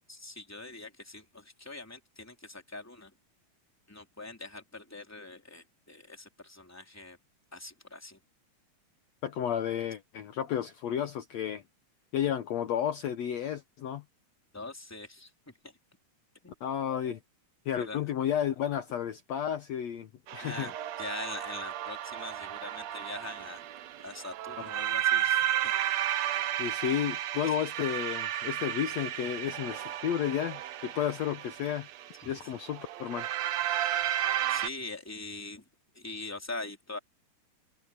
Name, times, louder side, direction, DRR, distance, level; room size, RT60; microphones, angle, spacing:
voice 1, 0.1-3.1 3.9-7.2 7.5-8.2 14.5-15.7 16.4-16.6 17.8-18.0 20.4-23.6 24.0-25.7 27.4-27.5 32.2-32.4 34.5-35.6 35.9-37.0, left 2 dB, 5° left, 3.2 m, -43 dB
voice 2, 9.2-11.6 12.1-14.0 16.6-17.2 17.7-20.7 26.6-31.9 32.3-33.3, left 9 dB, 65° left, 2.0 m, -32 dB
sound 1, 20.3-34.7, right 11 dB, 65° right, 1.9 m, -33 dB
omnidirectional pair, 3.7 m